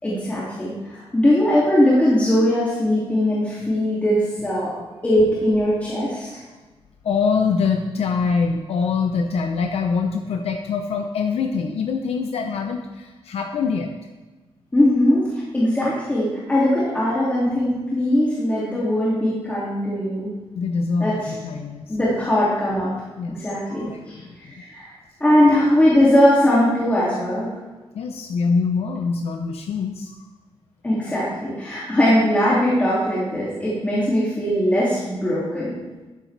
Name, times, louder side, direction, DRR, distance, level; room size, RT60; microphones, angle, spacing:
voice 1, 0.0-4.7 5.0-6.4 14.7-20.3 21.0-21.3 21.9-22.9 23.3-24.9 25.2-27.5 30.8-35.7, left 1 dB, 15° left, -8 dB, 2.4 m, -20 dB
voice 2, 7.0-13.9 20.5-22.0 23.2-24.5 27.9-30.2, left 5 dB, 90° left, 4 dB, 0.7 m, -24 dB
13.0 x 10.5 x 3.3 m, 1.3 s
wide cardioid pair, 170°, 10 cm